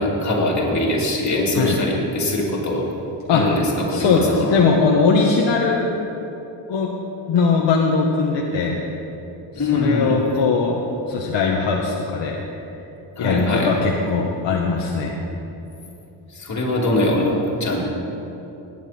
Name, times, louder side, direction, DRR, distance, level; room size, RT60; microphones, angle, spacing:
voice 1, 0.0-2.8 3.3-4.6 9.5-10.2 13.2-13.7 16.3-17.8, left 1 dB, 35° left, -4 dB, 2.9 m, -22 dB
voice 2, 3.9-5.9 6.7-6.9 7.3-8.8 9.7-10.8 11.1-12.4 13.2-15.1, left 4 dB, 60° left, -1 dB, 1.2 m, -20 dB
19.0 x 9.2 x 4.3 m, 3.0 s
cardioid pair, 130°, 48 cm